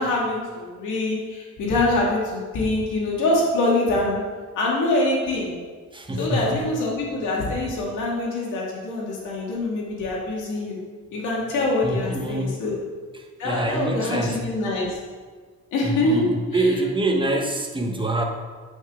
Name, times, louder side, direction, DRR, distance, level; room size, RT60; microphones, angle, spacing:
voice 1, 0.0-4.2 4.6-5.6 6.2-10.8 11.1-12.8 13.4-15.0 15.7-16.2 16.5-16.6, left 2 dB, 85° left, -3 dB, 2.2 m, -24 dB
voice 2, 5.9-6.6 11.8-12.6 13.1-14.4 15.8-18.2, right 1 dB, 15° right, 2 dB, 1.2 m, -25 dB
9.6 x 5.4 x 3.7 m, 1.5 s
cardioid pair, 90°, 30 cm